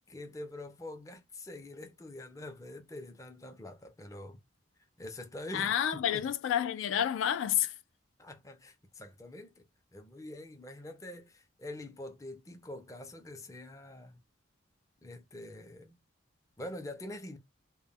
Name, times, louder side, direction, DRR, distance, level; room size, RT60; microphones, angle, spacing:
voice 1, 0.1-4.4 5.0-6.3 8.2-14.2 15.0-16.0 16.6-17.4, left 1 dB, 15° left, 0.4 m, -45 dB
voice 2, 5.5-7.7, left 10 dB, 75° left, 0.3 m, -29 dB
2.2 x 2.1 x 3.4 m
head